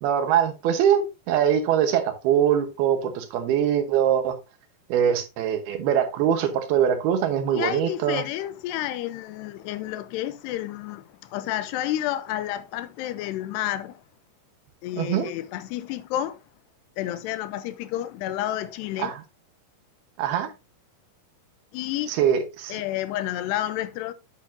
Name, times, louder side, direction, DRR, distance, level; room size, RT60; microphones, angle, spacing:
voice 1, 0.0-4.4 4.9-8.2 15.0-15.3 19.0-19.2 20.2-20.5 22.1-22.8, right 9 dB, 75° right, 3.0 m, -23 dB
voice 2, 7.5-14.0 14.8-16.4 17.0-19.1 21.7-22.1 22.7-24.1, left 13 dB, 90° left, 2.8 m, -30 dB
8.5 x 8.2 x 2.7 m
omnidirectional pair, 4.8 m